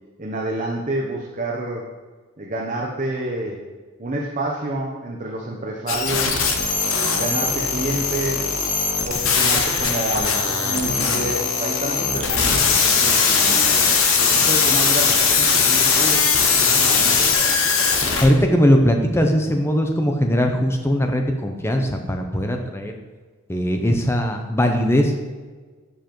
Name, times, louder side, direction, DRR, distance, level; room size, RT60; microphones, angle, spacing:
voice 1, 0.2-1.9 2.4-3.6 4.0-6.6 7.2-8.6 9.0-13.9 14.3-17.3, right 1 dB, 35° right, -2 dB, 0.7 m, -28 dB
sound 1, 5.9-18.2, left 5 dB, 70° left, 0.9 m, -19 dB
voice 2, 18.2-23.0 23.5-25.1, equal, 10° left, 4 dB, 0.5 m, -19 dB
7.2 x 6.8 x 3.0 m, 1.4 s
head